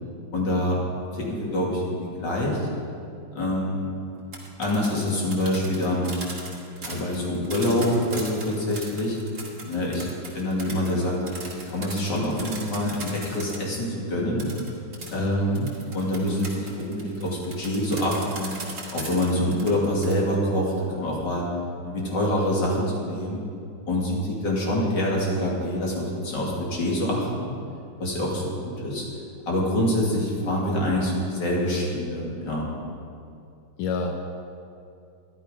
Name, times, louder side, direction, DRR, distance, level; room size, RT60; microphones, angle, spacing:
voice 1, 0.3-0.8 1.1-2.7 3.3-3.9 4.6-6.1 6.8-9.2 9.6-10.1 10.3-14.5 15.1-15.6 15.9-18.6 18.9-21.5 21.8-23.4 23.9-27.5 28.0-29.1 29.5-32.7, left 1 dB, 55° left, -3 dB, 3.0 m, -26 dB
sound 1, 4.2-13.8 14.4-20.1, right 3 dB, 35° right, 2.3 m, -39 dB
voice 2, 15.2-15.7 33.8-34.2, left 4 dB, 90° left, 3 dB, 1.8 m, -28 dB
13.0 x 11.5 x 5.2 m, 2.5 s
omnidirectional pair, 2.3 m